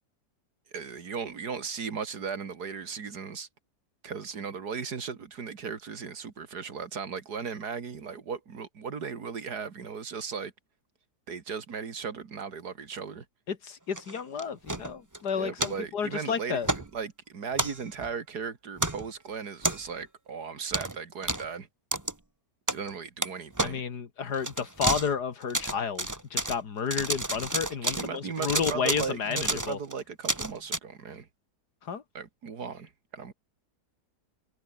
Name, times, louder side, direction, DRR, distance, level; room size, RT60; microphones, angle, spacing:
voice 1, 0.7-3.5 4.0-10.5 11.3-13.3 15.3-21.7 22.7-23.8 27.8-31.3 32.1-33.3, right 6 dB, 70° right, 2.6 m, -37 dB
voice 2, 13.5-16.7 23.6-29.8 31.8-32.0, left 6 dB, 75° left, 2.5 m, -31 dB
sound 1, 13.9-15.2 15.6-15.7 16.6-16.9 17.5-18.1 18.8-19.1 19.6-20.0 20.7-21.0 21.2-21.5 21.9-22.1 22.7-22.9 23.2-23.3 23.5-23.7 24.3-25.1 25.4-26.6 26.9-28.1 28.4-30.8, right 1 dB, 10° right, 1.5 m, -30 dB
omnidirectional pair, 1.7 m